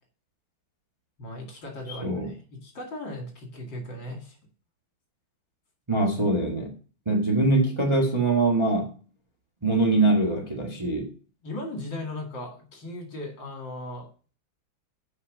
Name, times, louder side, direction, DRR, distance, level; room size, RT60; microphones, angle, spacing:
voice 1, 1.2-4.4 11.4-14.1, left 1 dB, 60° left, 2 dB, 3.0 m, -37 dB
voice 2, 5.9-6.7 7.0-8.9 9.6-11.1, right 2 dB, 15° right, 0 dB, 1.4 m, -23 dB
8.2 x 5.4 x 6.4 m, 0.39 s
omnidirectional pair, 2.3 m